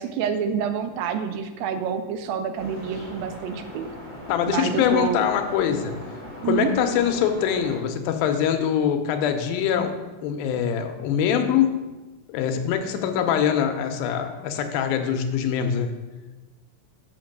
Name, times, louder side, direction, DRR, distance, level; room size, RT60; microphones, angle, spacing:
voice 1, 0.0-3.9 4.5-5.2 6.4-6.7, right 7 dB, 85° right, 8 dB, 2.3 m, -27 dB
sound 1, 2.5-7.8, equal, 5° right, 1.8 m, -40 dB
voice 2, 4.3-6.0 6.4-10.0 10.2-11.7 12.3-15.9, left 8 dB, 90° left, 6 dB, 2.5 m, -23 dB
6.0 x 5.9 x 6.5 m, 1.2 s
omnidirectional pair, 4.1 m